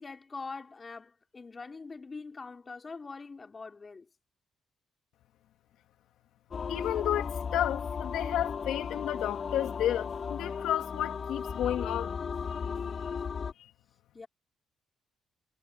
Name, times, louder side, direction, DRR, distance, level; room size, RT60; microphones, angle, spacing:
voice 1, 0.0-4.1 14.1-14.3, left 4 dB, 30° left, 4.7 m, -43 dB
sound 1, 6.5-13.5, left 6 dB, 45° left, 3.7 m, -35 dB
voice 2, 6.7-12.2 12.7-12.8, left 12 dB, 85° left, 2.2 m, -32 dB
cardioid pair, 90°, 0 cm